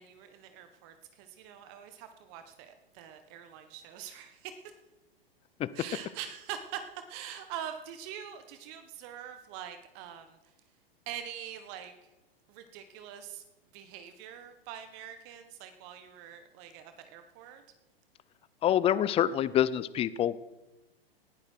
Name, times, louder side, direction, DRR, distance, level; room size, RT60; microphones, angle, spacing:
voice 1, 0.0-4.6 5.7-10.4 11.1-12.1 12.5-13.4 13.7-17.6, right 9 dB, 40° right, 8 dB, 1.5 m, -44 dB
voice 2, 18.6-20.4, left 10 dB, 20° left, 18 dB, 0.6 m, -26 dB
18.5 x 11.5 x 4.6 m, 1.0 s
hypercardioid pair, 115°, 30 cm